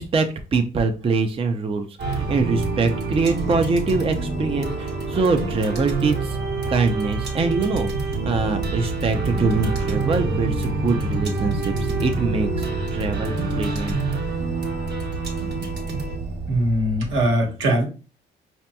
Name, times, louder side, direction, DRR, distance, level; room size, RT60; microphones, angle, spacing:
voice 1, 0.0-6.4 6.7-14.0, right 4 dB, 30° right, 0.5 m, -24 dB
sound 1, 2.0-17.3, right 3 dB, 60° right, 1.1 m, -26 dB
voice 2, 16.5-17.8, right 1 dB, 80° right, 1.3 m, -21 dB
4.9 x 2.8 x 2.2 m
cardioid pair, 90°, 20 cm